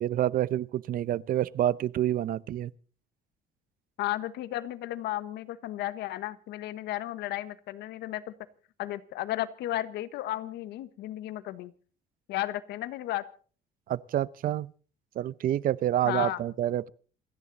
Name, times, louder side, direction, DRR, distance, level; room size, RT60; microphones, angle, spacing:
voice 1, 0.0-2.7 13.9-14.7 15.2-16.9, right 12 dB, 55° right, 0.7 m, -28 dB
voice 2, 4.0-8.3 8.8-11.7 12.3-13.2 16.0-16.4, left 14 dB, 80° left, 1.4 m, -34 dB
28.0 x 10.5 x 4.0 m
cardioid pair, 110°, 17 cm